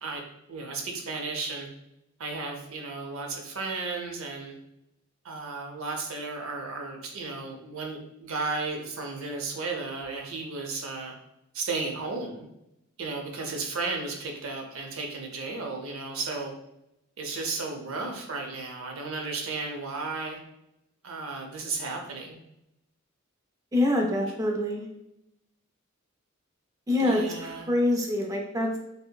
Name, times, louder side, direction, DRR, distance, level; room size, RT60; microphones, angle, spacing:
voice 1, 0.5-1.7 2.2-4.6 5.2-11.1 11.5-12.5 13.0-16.5 17.2-20.4 21.0-22.4 24.3-24.4 27.0-27.7, right 3 dB, 80° right, 2 dB, 0.6 m, -34 dB
voice 2, 23.7-24.9 26.9-28.8, left 1 dB, 15° right, 0 dB, 0.4 m, -25 dB
5.3 x 2.1 x 2.2 m, 0.85 s
head